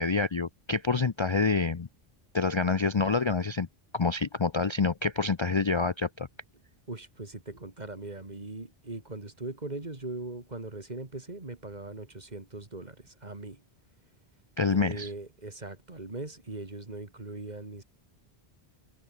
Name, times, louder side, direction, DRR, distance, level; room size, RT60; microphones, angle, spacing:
voice 1, 0.0-1.9 2.3-3.7 3.9-6.3 14.6-15.1, left 4 dB, 35° left, 0.6 m, -27 dB
voice 2, 6.9-13.6 14.7-17.8, right 2 dB, 45° right, 2.7 m, -40 dB
omnidirectional pair, 1.1 m